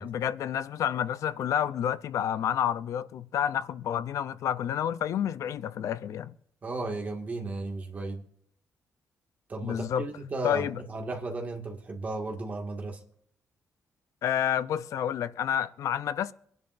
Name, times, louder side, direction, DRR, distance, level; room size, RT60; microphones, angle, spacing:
voice 1, 0.0-6.3 9.6-10.1 10.4-10.8 14.2-16.3, left 9 dB, 70° left, 0.6 m, -29 dB
voice 2, 6.6-8.2 9.5-13.0, right 2 dB, 30° right, 1.9 m, -35 dB
25.0 x 11.0 x 2.6 m
wide cardioid pair, 175°, 6 cm